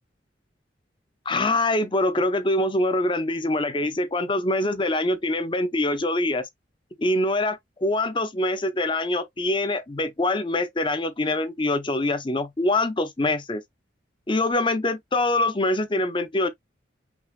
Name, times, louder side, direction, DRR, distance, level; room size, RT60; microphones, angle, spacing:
voice 1, 1.3-6.5 7.0-13.6 14.3-16.5, left 2 dB, 25° left, 0.7 m, -24 dB
5.3 x 2.5 x 3.2 m
head